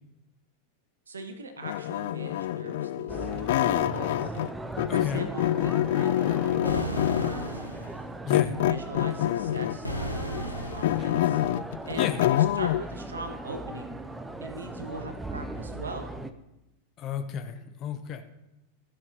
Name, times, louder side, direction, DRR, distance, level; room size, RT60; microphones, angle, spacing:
voice 1, 1.1-3.3 3.7-4.3 4.9-7.6 8.4-11.4 11.9-13.9 14.4-16.1, right 2 dB, 70° right, 7 dB, 1.3 m, -40 dB
sound 1, 1.6-4.5 4.8-7.5 8.3-9.9 10.3-12.8, left 13 dB, 55° left, 0.3 m, -26 dB
sound 2, 3.1-16.3, right 2 dB, 5° right, 0.6 m, -39 dB
voice 2, 4.9-5.3 8.2-8.6 11.9-12.3 17.0-18.2, left 8 dB, 35° left, 8 dB, 0.9 m, -32 dB
sound 3, 6.6-8.1 9.8-11.3, right 1 dB, 90° left, 1.1 m, -35 dB
14.5 x 6.5 x 4.0 m, 0.93 s
figure-of-eight pair, 90°, 0 cm